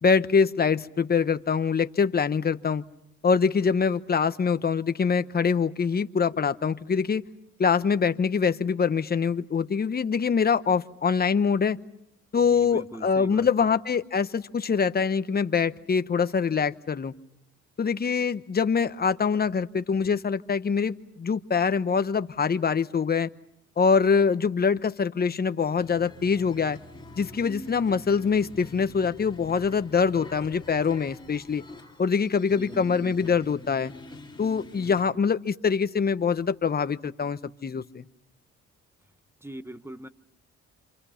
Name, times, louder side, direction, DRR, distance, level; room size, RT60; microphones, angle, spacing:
voice 1, 0.0-2.8 3.2-7.2 7.6-11.8 12.3-17.1 17.8-23.3 23.8-26.8 27.2-31.6 32.0-33.9 34.4-38.1, left 6 dB, 30° left, 1.0 m, -24 dB
voice 2, 12.4-13.5 32.6-33.4 39.4-40.1, right 1 dB, 10° right, 1.1 m, -41 dB
sound 1, 25.8-35.0, left 2 dB, 15° left, 2.9 m, -46 dB
29.0 x 27.0 x 5.8 m
cardioid pair, 90°, 30 cm